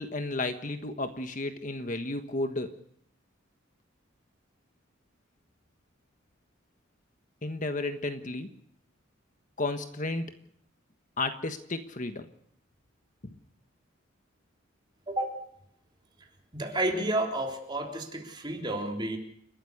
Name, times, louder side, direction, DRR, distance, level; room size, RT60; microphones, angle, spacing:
voice 1, 0.0-2.7 7.4-8.5 9.6-10.3 11.2-12.3 13.2-13.3, left 2 dB, 40° left, 8 dB, 1.4 m, -33 dB
voice 2, 16.5-19.2, right 1 dB, 25° right, 1 dB, 3.6 m, -31 dB
30.0 x 13.5 x 6.6 m, 0.68 s
head